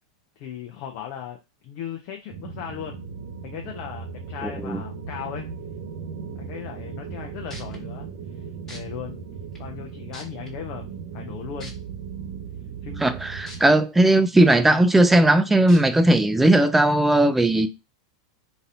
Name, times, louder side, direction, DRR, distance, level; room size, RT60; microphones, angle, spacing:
voice 1, 0.4-1.4 1.6-3.0 3.4-5.5 6.4-8.1 8.7-9.2 9.6-10.9 11.1-11.7 12.8-13.1 14.1-14.2, left 9 dB, 50° left, 0.5 m, -37 dB
sound 1, 2.3-13.7, right 6 dB, 55° right, 0.6 m, -37 dB
voice 2, 4.4-4.8 13.0-17.7, right 1 dB, 10° right, 0.3 m, -18 dB
sound 2, 7.5-7.8 8.7-8.8 9.5-9.6 10.1-10.5 11.6-11.7 13.5-13.6 14.1-14.2 15.7-15.8 16.6-16.7, left 1 dB, 15° left, 1.4 m, -41 dB
3.9 x 2.6 x 2.6 m
hypercardioid pair, 95°, 2 cm